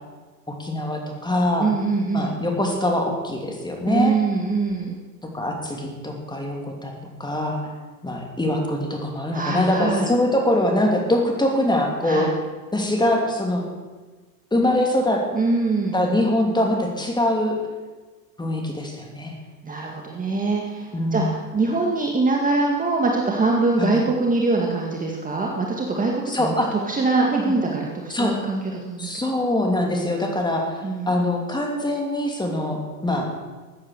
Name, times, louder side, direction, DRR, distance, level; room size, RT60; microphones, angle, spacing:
voice 1, 0.5-1.7 2.1-4.2 5.3-6.9 7.2-7.7 8.0-12.3 12.7-13.6 14.5-15.2 15.9-17.6 18.4-19.3 20.9-21.3 23.8-24.0 26.3-26.7 28.1-28.3 29.0-30.8 31.1-33.3, left 1 dB, 10° left, 1 dB, 3.0 m, -23 dB
voice 2, 1.6-2.4 3.8-5.0 9.3-10.1 12.0-12.3 15.3-16.0 19.6-29.1 30.8-31.1, right 3 dB, 15° right, -1 dB, 2.1 m, -23 dB
14.5 x 9.6 x 6.7 m, 1.3 s
hypercardioid pair, 95°, 48 cm